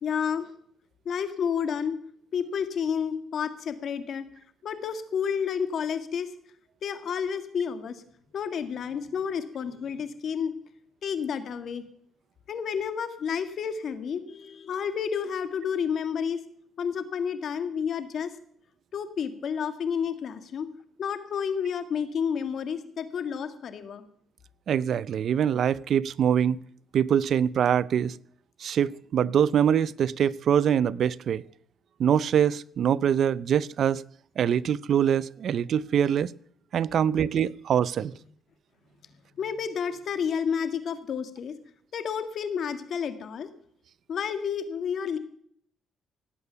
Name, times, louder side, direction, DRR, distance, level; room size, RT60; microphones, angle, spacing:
voice 1, 0.0-0.5 1.1-2.0 2.3-4.3 4.6-6.3 6.8-8.0 8.3-10.5 11.0-11.8 12.5-16.4 16.8-18.3 18.9-20.7 21.0-24.0 39.0-41.6 41.9-43.5 44.1-45.2, left 7 dB, 60° left, 1.8 m, -30 dB
voice 2, 24.7-26.6 26.9-28.1 28.6-31.4 32.0-34.0 34.4-36.3 36.7-38.1, right 9 dB, 65° right, 0.5 m, -24 dB
18.0 x 8.5 x 7.0 m
cardioid pair, 90°, 0 cm